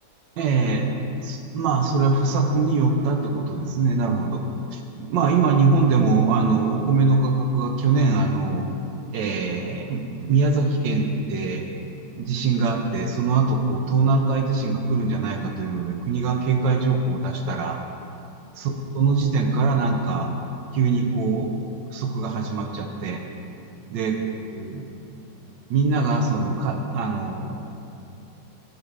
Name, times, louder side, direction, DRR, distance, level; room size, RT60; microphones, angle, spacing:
voice 1, 0.4-0.9 1.2-4.4 4.7-8.7 9.1-10.0 10.3-11.6 12.2-17.8 18.6-20.3 20.7-21.5 21.9-23.2 23.9-24.2 24.5-24.8 25.7-27.6, right 4 dB, 70° right, 4 dB, 1.2 m, -22 dB
11.0 x 5.2 x 3.2 m, 2.6 s
omnidirectional pair, 2.2 m